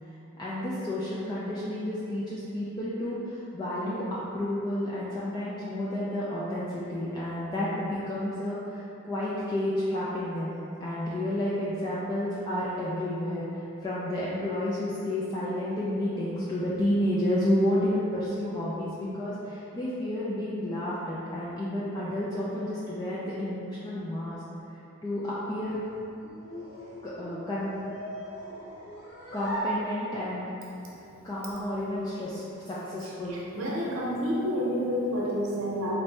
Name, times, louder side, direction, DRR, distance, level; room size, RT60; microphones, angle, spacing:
voice 1, 0.4-10.5 10.8-24.4 25.0-25.8 27.0-27.7 29.3-30.5 30.9-31.0 31.2-33.4, left 1 dB, 20° left, -9 dB, 0.3 m, -31 dB
sound 1, 25.5-30.5, right 1 dB, 60° left, 0.9 m, -39 dB
voice 2, 33.3-35.9, equal, 65° right, -5 dB, 0.8 m, -29 dB
4.1 x 2.6 x 3.3 m, 2.9 s
head